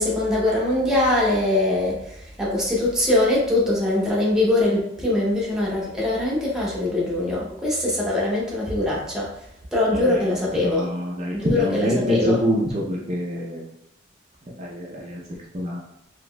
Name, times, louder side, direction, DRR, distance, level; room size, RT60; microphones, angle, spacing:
voice 1, 0.0-9.3 9.7-10.9 11.3-12.4, left 1 dB, 5° right, -6 dB, 0.8 m, -22 dB
voice 2, 10.6-13.6 14.6-15.2 15.5-15.8, equal, 35° right, -4 dB, 0.5 m, -25 dB
4.0 x 2.9 x 2.2 m, 0.81 s
head